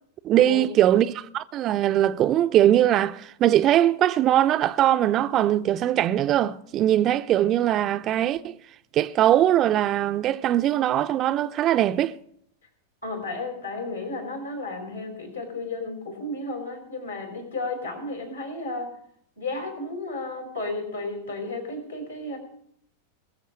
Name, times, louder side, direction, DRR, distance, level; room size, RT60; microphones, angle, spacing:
voice 1, 0.2-8.5 8.9-12.2, right 12 dB, 35° right, 0.5 m, -21 dB
voice 2, 13.0-18.9 19.4-22.4, left 2 dB, 80° left, 4.3 m, -33 dB
21.0 x 7.2 x 6.4 m
figure-of-eight pair, 90°, 0 cm